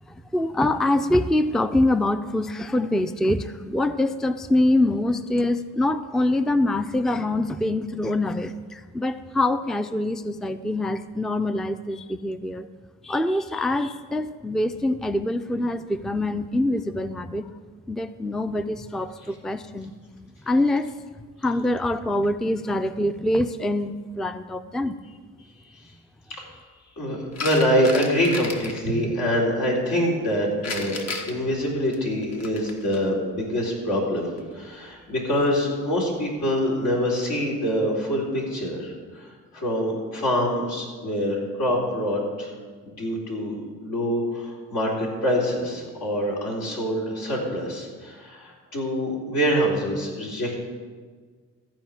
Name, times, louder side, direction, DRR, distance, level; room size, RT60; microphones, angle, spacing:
voice 1, 0.1-12.7 13.0-17.4 17.9-19.9 20.5-20.9 21.4-24.9, left 1 dB, ahead, 11 dB, 0.4 m, -24 dB
voice 2, 27.0-39.3 39.5-42.5 42.9-43.6 43.8-50.6, equal, 80° left, -3 dB, 4.0 m, -25 dB
sound 1, 27.3-28.8 30.6-33.0 34.2-34.4, left 3 dB, 60° left, 1.6 m, -34 dB
14.5 x 5.0 x 9.0 m, 1.5 s
cardioid pair, 90°, 30 cm